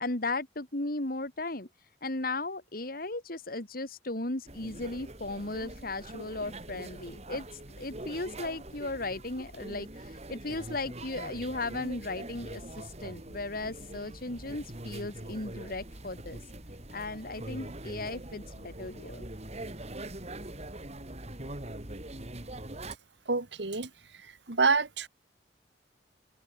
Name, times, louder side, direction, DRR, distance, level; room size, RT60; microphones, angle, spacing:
voice 1, 0.0-1.7 2.0-16.4 16.9-19.2, left 2 dB, 55° left, 2.7 m, -36 dB
sound 1, 4.5-23.0, right 1 dB, 40° right, 3.5 m, -43 dB
voice 2, 23.3-23.9 24.2-25.1, right 4 dB, 80° right, 1.9 m, -28 dB
head